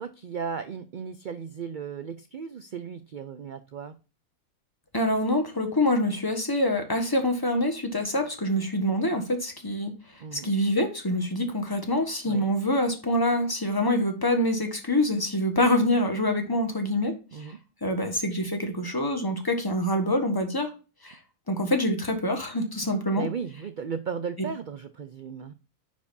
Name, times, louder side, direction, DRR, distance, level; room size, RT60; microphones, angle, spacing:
voice 1, 0.0-4.0 10.2-10.5 12.2-12.5 17.3-17.6 23.2-25.5, right 6 dB, 75° right, 0.4 m, -36 dB
voice 2, 4.9-9.9 10.3-17.5 17.8-20.7 21.0-21.2 21.5-23.3, left 1 dB, 15° left, 1.3 m, -25 dB
9.8 x 5.1 x 2.6 m
omnidirectional pair, 1.5 m